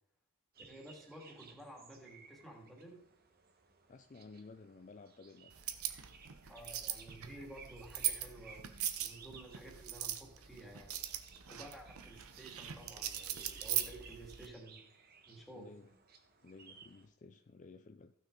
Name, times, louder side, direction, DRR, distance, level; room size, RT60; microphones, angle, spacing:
sound 1, 0.5-17.1, right 5 dB, 45° right, 1.2 m, -59 dB
voice 1, 0.7-3.0 6.5-8.7 9.0-11.0 11.5-14.8 15.3-15.7, right 1 dB, ahead, 2.1 m, -52 dB
voice 2, 3.9-5.5 15.5-15.9 16.4-18.1, left 3 dB, 35° left, 0.4 m, -54 dB
sound 2, 5.5-14.5, right 11 dB, 85° right, 0.8 m, -41 dB
15.0 x 6.2 x 3.8 m
head